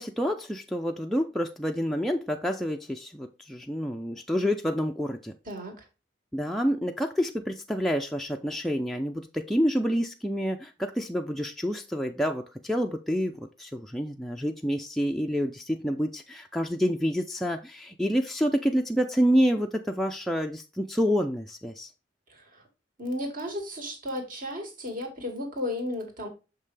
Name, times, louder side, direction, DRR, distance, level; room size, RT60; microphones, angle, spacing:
voice 1, 0.0-5.3 6.3-21.9, equal, ahead, 0.4 m, -28 dB
voice 2, 5.5-5.8 22.3-22.6 23.0-26.3, left 1 dB, 50° right, 2.1 m, -34 dB
6.5 x 5.5 x 3.3 m
head